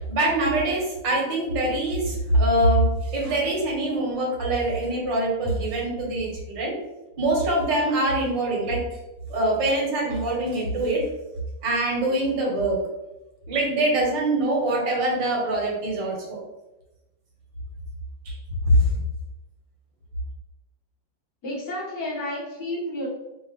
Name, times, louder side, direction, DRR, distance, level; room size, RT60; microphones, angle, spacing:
voice 1, 0.1-6.8 7.2-8.9 9.3-11.0 11.6-12.8 13.5-16.4 18.3-18.4 18.7-18.8, right 1 dB, 75° right, -2 dB, 2.0 m, -24 dB
voice 2, 21.4-23.1, left 1 dB, 65° left, -6 dB, 2.1 m, -31 dB
5.3 x 2.9 x 3.3 m, 0.99 s
omnidirectional pair, 2.0 m